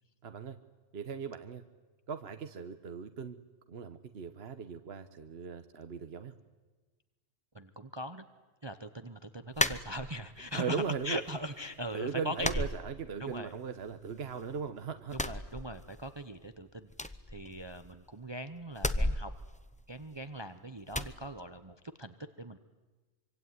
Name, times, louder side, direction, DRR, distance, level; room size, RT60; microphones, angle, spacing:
voice 1, 0.2-0.6 0.9-1.6 2.1-3.4 3.7-6.3 10.5-11.2 11.9-15.2, right 6 dB, 55° right, 8 dB, 1.3 m, -38 dB
voice 2, 7.5-8.2 8.6-12.7 13.2-13.5 15.1-16.9 17.3-19.3 19.9-22.6, equal, 25° right, 10 dB, 0.9 m, -40 dB
sound 1, 9.5-10.4 10.8-11.5 11.8-11.9 12.4-13.5 13.8-14.6 15.0-16.2 16.5-16.6 16.9-18.1 18.7-20.4 20.9-21.2, left 1 dB, 5° left, 0.7 m, -35 dB
25.0 x 25.0 x 9.5 m, 1.2 s
omnidirectional pair, 1.3 m